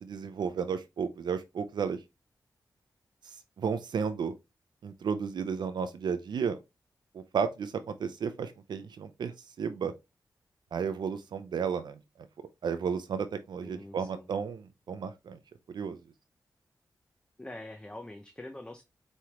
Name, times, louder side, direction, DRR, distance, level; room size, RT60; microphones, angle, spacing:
voice 1, 0.0-2.0 3.2-4.3 4.8-6.6 7.1-7.7 8.0-9.3 9.6-9.9 10.7-12.0 12.6-15.4 15.7-16.0, right 6 dB, 80° right, 0.4 m, -33 dB
voice 2, 13.6-14.3 17.4-18.8, left 1 dB, 15° left, 0.5 m, -44 dB
4.7 x 3.2 x 2.9 m
wide cardioid pair, 80°, 7 cm